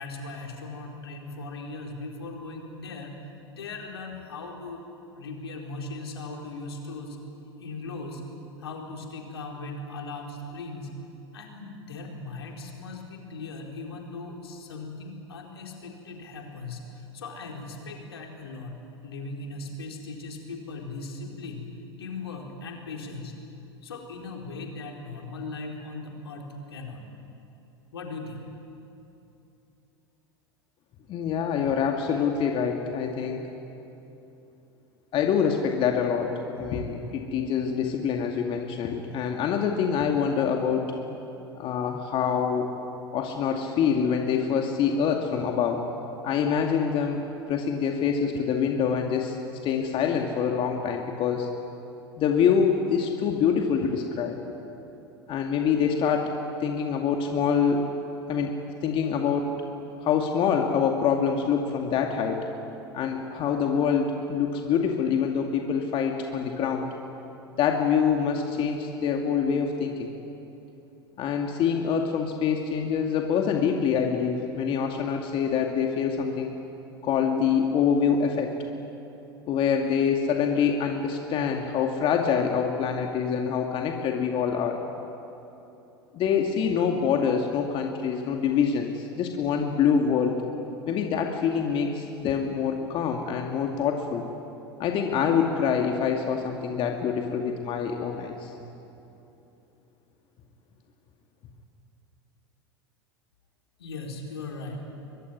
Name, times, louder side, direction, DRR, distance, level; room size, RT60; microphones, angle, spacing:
voice 1, 0.0-3.1 3.5-4.8 5.1-7.2 7.6-8.2 8.6-10.9 11.3-23.4 23.8-27.0 27.9-28.4 103.8-104.8, left 3 dB, 75° left, 1 dB, 4.3 m, -38 dB
voice 2, 31.1-33.5 35.1-40.9 41.5-42.7 43.1-45.8 46.2-47.2 47.5-49.4 49.6-51.5 52.2-54.4 55.3-56.3 56.6-57.9 58.3-59.5 60.0-62.5 62.9-66.9 67.6-70.1 71.2-76.5 77.0-78.5 79.5-84.8 86.1-90.4 90.9-94.3 94.8-98.5, left 7 dB, 40° left, 3 dB, 2.4 m, -25 dB
23.5 x 22.5 x 9.8 m, 2.9 s
figure-of-eight pair, 85°, 13 cm